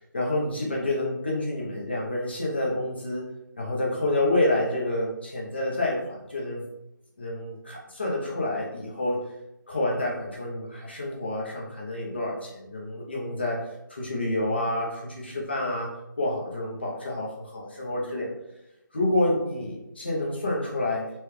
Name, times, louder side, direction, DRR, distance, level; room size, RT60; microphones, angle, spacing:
voice 1, 0.1-3.3 3.6-6.6 7.2-9.3 9.7-13.6 13.9-18.3 18.9-21.1, left 1 dB, 30° left, -3 dB, 0.6 m, -28 dB
4.2 x 2.2 x 3.2 m, 0.90 s
figure-of-eight pair, 175°, 11 cm